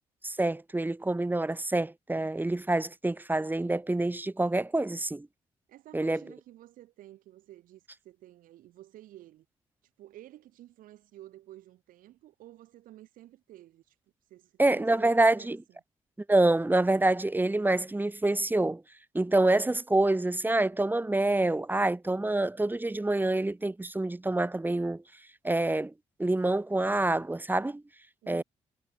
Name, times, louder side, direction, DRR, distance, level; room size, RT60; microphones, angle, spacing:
voice 1, 0.2-5.3 5.9-6.2 14.6-15.6 16.3-18.8 19.1-25.0 25.4-25.9 26.2-27.8 28.3-28.4, right 2 dB, 15° right, 0.9 m, -26 dB
voice 2, 5.7-9.5 10.0-13.9 14.3-15.8 28.2-28.4, right 14 dB, 75° right, 4.1 m, -52 dB
hypercardioid pair, 45°, 14 cm